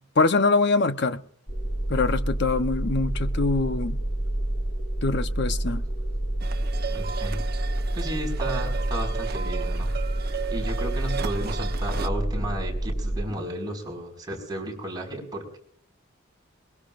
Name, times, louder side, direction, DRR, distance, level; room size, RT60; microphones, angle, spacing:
voice 1, 0.2-1.2 1.9-4.0 5.0-5.8, left 3 dB, 60° left, 0.9 m, -23 dB
sound 1, 1.5-13.2, right 1 dB, 25° left, 3.3 m, -28 dB
sound 2, 6.4-12.1, right 7 dB, 50° right, 1.1 m, -35 dB
voice 2, 6.9-7.4 7.9-9.9 10.5-15.6, right 1 dB, 20° right, 5.4 m, -33 dB
22.0 x 21.5 x 2.5 m
head